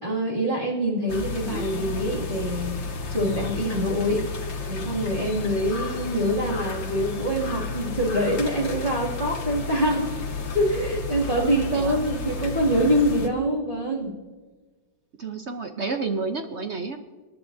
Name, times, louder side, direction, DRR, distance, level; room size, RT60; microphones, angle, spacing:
voice 1, 0.0-2.8 3.1-4.2 4.7-10.1 10.5-14.1, equal, 25° right, -4 dB, 2.6 m, -25 dB
sound 1, 1.1-13.3, left 4 dB, 80° left, 2.0 m, -32 dB
voice 2, 11.4-12.1 15.2-17.0, right 4 dB, 55° right, 5 dB, 0.8 m, -30 dB
26.0 x 11.0 x 2.7 m, 1.3 s
omnidirectional pair, 2.0 m